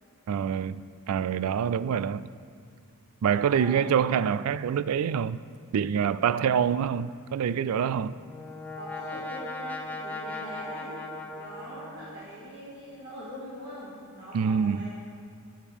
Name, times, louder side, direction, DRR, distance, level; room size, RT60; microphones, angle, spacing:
voice 1, 0.3-0.8 1.1-2.3 3.2-5.4 5.7-8.2 14.3-14.9, right 7 dB, 90° right, 0.3 m, -26 dB
voice 2, 3.4-3.9 6.7-6.9 8.8-11.0 11.3-14.9, equal, 50° right, 1.9 m, -42 dB
Brass instrument, 7.8-12.5, left 2 dB, 10° left, 0.7 m, -39 dB
13.5 x 8.8 x 3.6 m
head